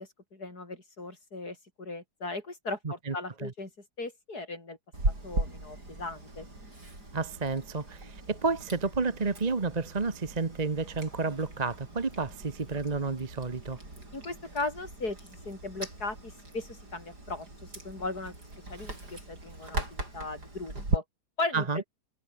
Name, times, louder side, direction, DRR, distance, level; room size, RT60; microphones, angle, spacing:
voice 1, 0.0-3.7 4.0-4.8 5.1-6.5 14.1-18.3 18.7-21.0 21.4-21.9, left 3 dB, 65° left, 5.9 m, -37 dB
voice 2, 2.8-3.5 7.1-13.8 21.5-21.8, right 4 dB, 25° right, 1.2 m, -31 dB
Chewing mastication, 4.9-21.0, right 2 dB, 75° right, 8.4 m, -38 dB
omnidirectional pair, 1.8 m